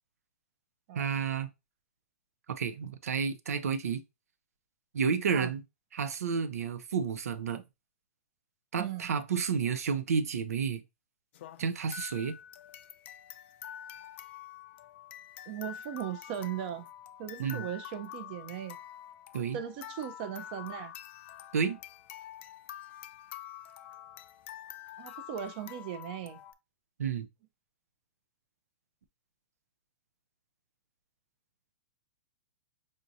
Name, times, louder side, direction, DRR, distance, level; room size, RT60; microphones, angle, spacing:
voice 1, 0.9-1.5 2.5-4.0 4.9-5.6 5.9-7.6 8.7-10.8 11.6-12.4 17.4-17.7 19.3-19.6 21.5-21.8 27.0-27.3, right 6 dB, 85° right, 0.6 m, -31 dB
voice 2, 8.8-9.1 15.5-16.9 17.2-18.8 19.5-20.9 25.0-26.4, right 10 dB, 40° right, 0.6 m, -38 dB
sound 1, 11.3-26.5, left 10 dB, 50° left, 0.4 m, -47 dB
5.0 x 2.7 x 2.6 m
hypercardioid pair, 150°, 8 cm